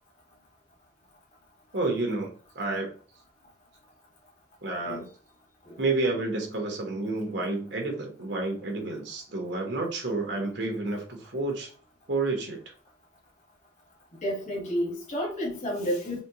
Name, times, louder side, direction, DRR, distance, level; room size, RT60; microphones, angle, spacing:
voice 1, 1.7-2.9 4.6-5.0 5.8-11.7 12.1-12.6, right 2 dB, 85° right, 1.1 m, -30 dB
voice 2, 14.2-16.2, equal, 40° left, 1.3 m, -30 dB
4.3 x 2.3 x 2.8 m
head